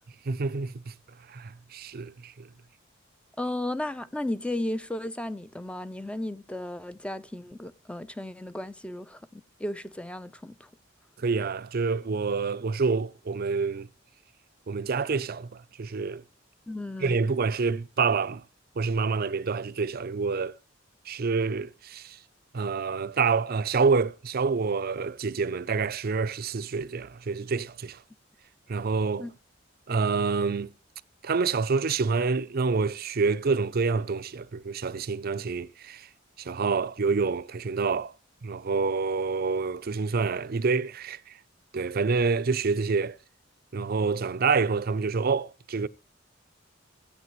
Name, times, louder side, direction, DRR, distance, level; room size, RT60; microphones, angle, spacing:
voice 1, 0.3-0.9 1.3-2.5 11.2-13.9 14.7-16.2 17.0-18.4 18.8-20.6 21.1-22.2 22.5-28.0 28.7-29.3 29.9-30.7 31.2-36.1 36.4-38.1 38.4-41.2 41.7-43.2 43.7-45.9, right 4 dB, 50° right, 0.5 m, -27 dB
voice 2, 3.4-10.7 16.7-17.2 29.2-29.3, left 1 dB, 5° left, 0.5 m, -34 dB
16.0 x 8.7 x 3.1 m
head